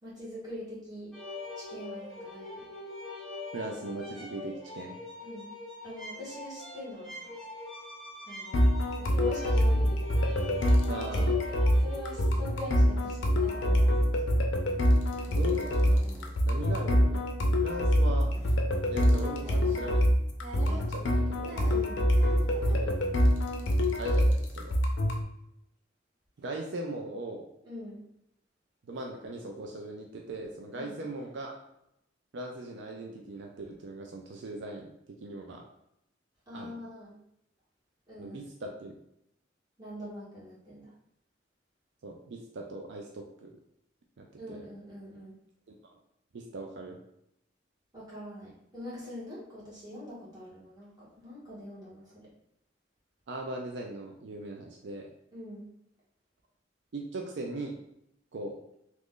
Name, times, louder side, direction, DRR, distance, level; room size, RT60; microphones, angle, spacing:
voice 1, 0.0-1.1 1.6-2.6 5.2-5.5 5.8-7.3 8.3-8.6 9.0-10.2 11.1-11.3 11.8-14.1 21.7-22.0 27.6-28.0 30.7-30.9 36.5-37.1 38.1-38.4 39.8-40.9 44.4-45.3 47.9-52.3 55.3-55.7, equal, 20° right, -8 dB, 1.4 m, -43 dB
sound 1, 1.1-12.4, left 2 dB, ahead, 1.0 m, -43 dB
voice 2, 3.5-5.0 10.9-11.3 15.3-16.1 16.4-17.3 17.6-18.3 18.9-20.0 20.5-21.6 22.7-22.9 24.0-24.8 26.4-27.5 28.9-31.6 32.3-34.9 35.2-35.6 36.5-36.7 38.2-38.9 42.0-43.5 44.2-44.6 45.7-45.8 46.3-47.0 53.3-55.1 56.9-57.8 58.3-58.6, right 2 dB, 70° right, 1 dB, 0.4 m, -39 dB
sound 2, 8.5-25.2, equal, 90° left, 0.5 m, -25 dB
sound 3, 8.8-8.9 9.2-9.7 10.3-10.8 11.7-12.1 13.3-14.1 14.3-14.4 15.1-16.3 17.6-18.0 18.3-18.6 19.4-20.1 20.4-21.1 21.4-22.9 23.5-24.0, right 2 dB, 35° right, 0.7 m, -47 dB
3.0 x 2.5 x 3.7 m, 0.78 s
head